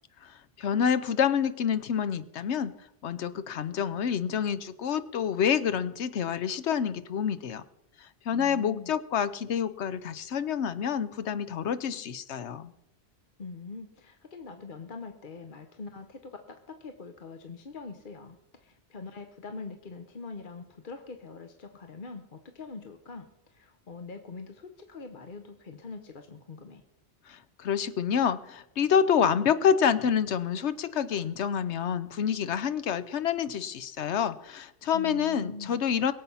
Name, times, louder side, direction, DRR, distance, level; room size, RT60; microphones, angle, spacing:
voice 1, 0.6-2.7 3.0-7.6 8.3-12.7 27.3-36.1, left 8 dB, 90° left, 13 dB, 1.1 m, -27 dB
voice 2, 8.3-8.9 13.4-26.8 34.9-35.9, left 4 dB, 50° left, 6 dB, 1.1 m, -43 dB
22.0 x 7.7 x 5.6 m, 0.85 s
omnidirectional pair, 1.1 m